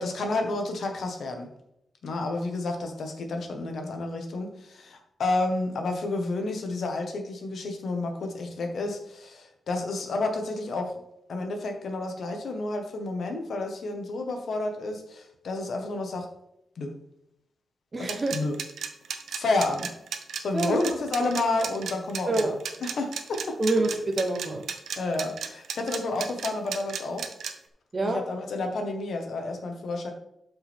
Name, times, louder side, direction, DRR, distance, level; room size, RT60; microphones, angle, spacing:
voice 1, 0.0-1.5 2.0-10.9 11.3-16.3 16.8-16.9 18.0-18.6 19.3-19.9 20.4-22.5 22.8-23.6 25.0-27.3 28.0-30.1, left 2 dB, 60° left, 4 dB, 1.5 m, -30 dB
voice 2, 17.9-18.4 20.5-20.8 22.3-22.6 23.6-24.6 27.9-28.2, right 2 dB, 25° right, 2 dB, 1.0 m, -26 dB
sound 1, 18.0-27.5, right 7 dB, 80° right, 0.9 m, -34 dB
12.0 x 5.9 x 3.6 m, 0.78 s
wide cardioid pair, 165°, 0 cm